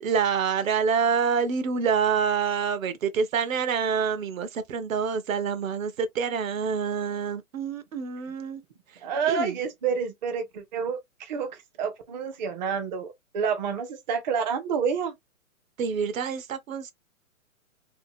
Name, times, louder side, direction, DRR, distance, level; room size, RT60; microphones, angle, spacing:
voice 1, 0.0-8.6 9.3-9.6 15.8-16.9, right 6 dB, 70° right, 0.7 m, -27 dB
voice 2, 9.0-15.1, right 6 dB, 35° right, 0.5 m, -29 dB
2.8 x 2.5 x 2.6 m
hypercardioid pair, 130°, 42 cm